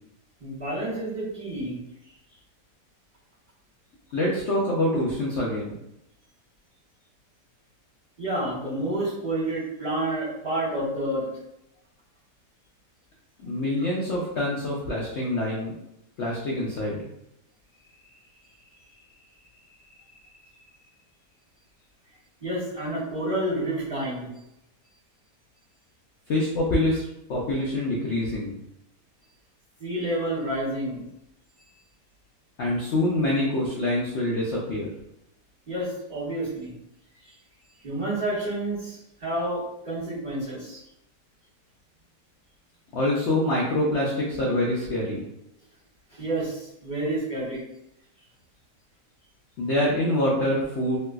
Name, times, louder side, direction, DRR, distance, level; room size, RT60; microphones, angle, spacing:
voice 1, 0.4-1.8 8.2-11.3 19.8-20.4 22.4-24.3 29.8-31.0 35.7-36.7 37.2-37.3 37.8-40.8 46.1-47.6, right 1 dB, 30° right, -13 dB, 1.6 m, -29 dB
voice 2, 4.1-5.8 13.4-15.7 16.2-17.0 26.3-28.6 32.6-34.9 42.9-45.2 49.6-51.0, left 1 dB, 80° left, -4 dB, 0.6 m, -25 dB
3.2 x 2.9 x 2.3 m, 0.83 s
omnidirectional pair, 1.8 m